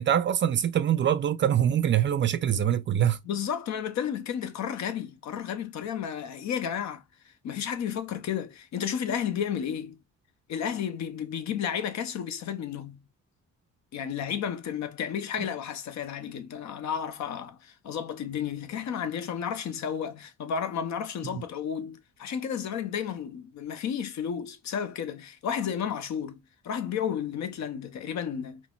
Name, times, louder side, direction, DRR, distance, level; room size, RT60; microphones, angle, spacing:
voice 1, 0.0-3.2 21.2-21.4, right 10 dB, 40° right, 0.4 m, -24 dB
voice 2, 3.2-7.0 7.4-10.0 10.5-13.0 13.9-28.6, left 8 dB, 65° left, 0.6 m, -32 dB
3.8 x 2.0 x 2.2 m
cardioid pair, 90°, 30 cm